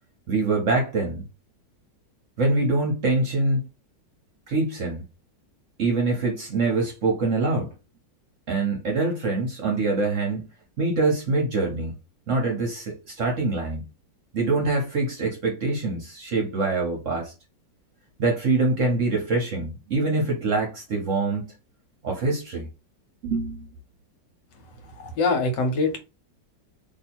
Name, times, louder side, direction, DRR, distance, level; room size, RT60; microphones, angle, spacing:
voice 1, 0.3-1.2 2.4-3.7 4.5-5.0 5.8-7.7 8.5-10.5 10.8-11.9 12.3-13.9 14.3-17.3 18.2-21.5 22.0-22.7 23.2-23.7, right 3 dB, 55° right, 0.9 m, -24 dB
voice 2, 25.0-26.0, left 3 dB, 75° left, 1.6 m, -23 dB
2.8 x 2.7 x 4.3 m
omnidirectional pair, 1.9 m